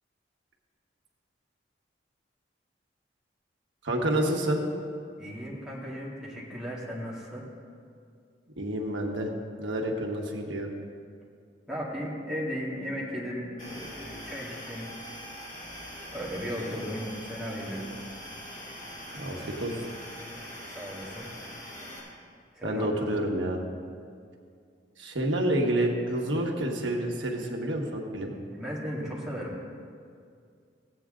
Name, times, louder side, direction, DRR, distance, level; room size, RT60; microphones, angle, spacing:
voice 1, 3.8-4.6 8.6-9.3 9.6-10.7 19.1-19.8 22.6-23.6 25.0-28.3, right 1 dB, 90° right, 0 dB, 1.5 m, -28 dB
voice 2, 5.2-7.4 11.7-14.9 16.1-17.9 20.7-21.3 22.5-22.9 28.5-29.5, equal, 5° right, -7 dB, 2.2 m, -36 dB
sound 1, 13.6-22.0, equal, 40° left, 3.0 m, -43 dB
15.5 x 8.6 x 3.8 m, 2.2 s
head